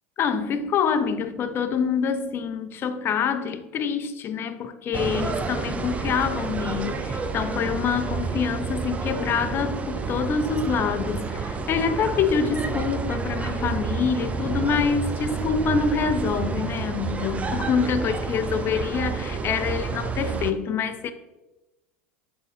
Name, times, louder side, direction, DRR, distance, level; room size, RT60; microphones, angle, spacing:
voice 1, 0.2-21.1, left 6 dB, 35° left, 0.4 m, -26 dB
sound 1, 4.9-20.5, right 5 dB, 20° right, 0.5 m, -29 dB
6.3 x 3.7 x 4.1 m
hypercardioid pair, 95°, 7 cm